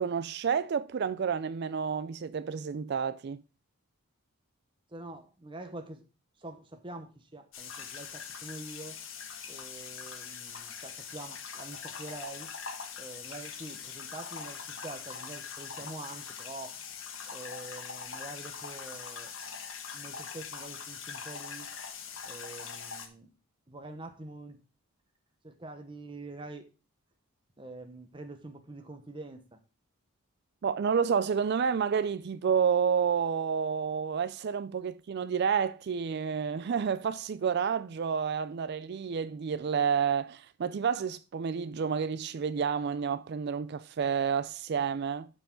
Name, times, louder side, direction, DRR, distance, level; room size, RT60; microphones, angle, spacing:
voice 1, 0.0-3.4 30.6-45.3, right 6 dB, 50° right, 0.3 m, -30 dB
voice 2, 4.9-6.0 6.4-9.0 9.5-12.5 13.0-16.8 17.3-19.3 19.9-21.7 22.2-23.3 23.7-24.6 25.4-26.7 27.6-29.6, right 2 dB, 20° right, 1.0 m, -45 dB
sound 1, 7.5-23.1, left 6 dB, 60° left, 1.5 m, -42 dB
12.5 x 4.7 x 3.7 m
head